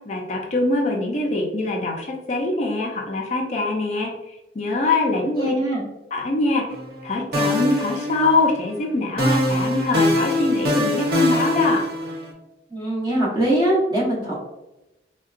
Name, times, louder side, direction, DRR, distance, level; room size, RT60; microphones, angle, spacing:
voice 1, 0.1-4.1 4.5-5.5 6.1-6.6 7.0-11.9, left 3 dB, 40° left, 0 dB, 0.4 m, -23 dB
voice 2, 5.2-5.8 12.7-14.3, right 1 dB, 25° right, -5 dB, 1.0 m, -22 dB
sound 1, 6.7-7.0 7.3-8.7 9.2-12.3, left 1 dB, 60° right, 0.6 m, -23 dB
3.6 x 2.2 x 2.4 m, 0.95 s
head